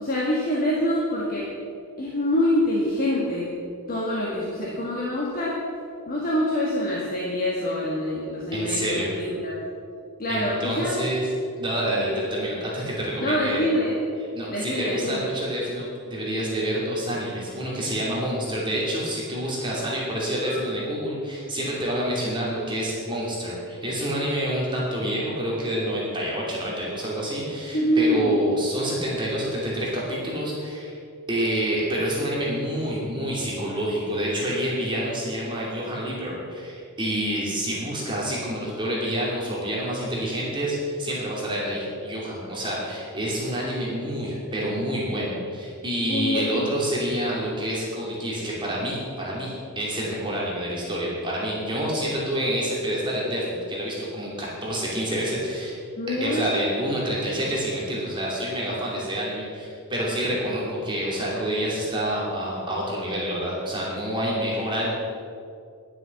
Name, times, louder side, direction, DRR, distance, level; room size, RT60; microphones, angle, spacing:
voice 1, 0.0-1.5 2.0-3.6 3.9-5.6 6.1-9.6 10.2-10.9 12.0-12.2 13.2-14.0 14.5-15.2 20.4-20.8 27.7-28.5 46.1-46.7 56.0-56.5, left 1 dB, 40° left, -5 dB, 1.8 m, -25 dB
voice 2, 8.5-9.1 10.3-11.3 11.6-13.6 14.3-30.9 31.3-55.7 56.2-64.9, equal, 20° right, -5 dB, 2.9 m, -28 dB
11.0 x 7.7 x 7.1 m, 2.4 s
head